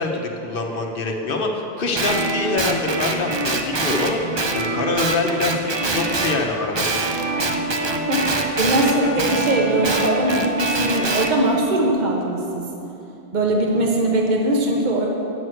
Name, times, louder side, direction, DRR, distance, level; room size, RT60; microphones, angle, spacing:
voice 1, 0.0-4.2 4.5-6.9, left 3 dB, 60° left, 2 dB, 1.2 m, -25 dB
Guitar, 1.9-6.4 6.7-11.3, right 2 dB, 30° right, 0.6 m, -24 dB
Wind instrument woodwind instrument, 7.1-11.4, equal, 35° left, 1.1 m, -29 dB
voice 2, 8.6-12.7 13.3-15.1, right 1 dB, 45° right, 0 dB, 1.2 m, -21 dB
9.2 x 6.3 x 7.8 m, 2.9 s
omnidirectional pair, 1.0 m